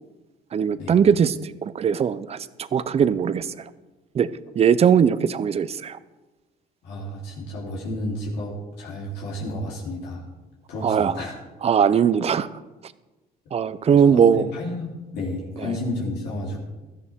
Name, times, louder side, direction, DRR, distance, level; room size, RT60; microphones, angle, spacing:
voice 1, 0.5-3.7 4.1-4.3 4.5-6.0 10.8-11.1 11.6-12.5 13.5-14.5 15.6-15.8, right 7 dB, 40° right, 15 dB, 0.7 m, -20 dB
voice 2, 6.8-10.2 10.7-11.3 13.9-16.6, left 1 dB, 80° left, -3 dB, 3.5 m, -31 dB
16.5 x 13.5 x 3.7 m, 1.1 s
cardioid pair, 110°, 17 cm